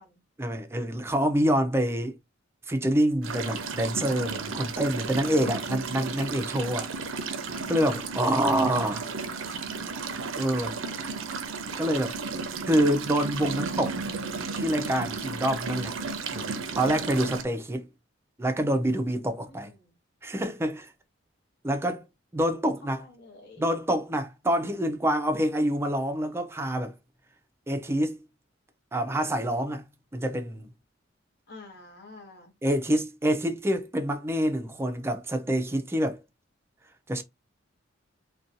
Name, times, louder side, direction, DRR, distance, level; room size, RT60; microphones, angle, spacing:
voice 1, 0.4-2.2 2.7-6.9 7.7-9.0 9.4-9.5 10.4-10.8 11.8-12.2 12.7-14.0 14.6-16.0 16.3-17.9 18.4-19.7 20.2-20.9 21.6-22.1 22.3-23.0 23.6-26.9 27.7-28.2 28.9-29.8 30.1-30.7 32.6-36.2 37.1-37.2, equal, 15° right, 0.4 m, -26 dB
sound 1, 3.2-17.4, right 4 dB, 85° right, 0.5 m, -33 dB
voice 2, 8.7-9.5 19.5-20.0 22.8-23.7 31.5-32.5, left 3 dB, 55° left, 0.9 m, -50 dB
2.6 x 2.2 x 2.6 m
head